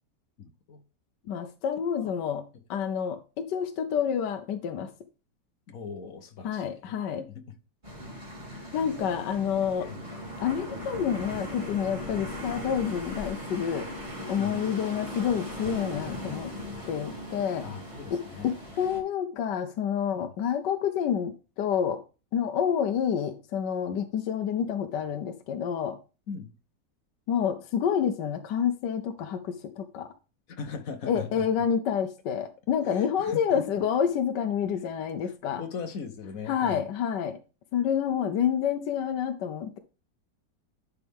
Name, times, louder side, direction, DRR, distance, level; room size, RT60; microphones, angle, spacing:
voice 1, 0.4-0.8 2.0-2.1 5.7-7.4 8.5-10.0 12.0-12.2 14.3-14.6 17.6-18.5 20.1-20.3 26.3-26.5 30.5-31.5 32.9-33.6 35.2-36.9, left 5 dB, 55° left, 1.3 m, -40 dB
voice 2, 1.3-2.4 2.7-4.9 6.4-7.2 8.7-9.9 10.4-13.9 14.3-16.5 16.9-17.7 18.1-22.0 22.3-26.0 27.3-30.1 31.1-35.6 36.5-37.4 37.7-39.8, left 8 dB, 70° left, 1.3 m, -28 dB
sound 1, 7.8-19.0, left 1 dB, 15° right, 2.5 m, -38 dB
11.0 x 4.8 x 3.5 m
omnidirectional pair, 2.0 m